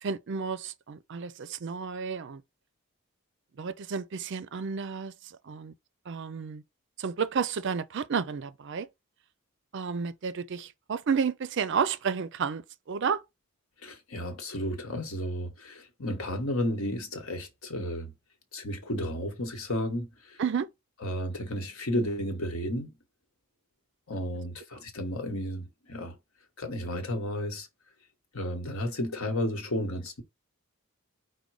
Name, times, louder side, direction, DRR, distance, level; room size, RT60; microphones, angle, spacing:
voice 1, 0.0-2.4 3.6-5.7 6.1-6.6 7.0-8.9 9.7-13.2 20.4-20.7, right 6 dB, 55° right, 0.4 m, -31 dB
voice 2, 13.8-18.1 18.5-20.4 21.0-22.9 24.1-26.2 26.6-27.7 28.3-30.2, equal, 70° left, 1.2 m, -33 dB
5.1 x 2.2 x 4.7 m
head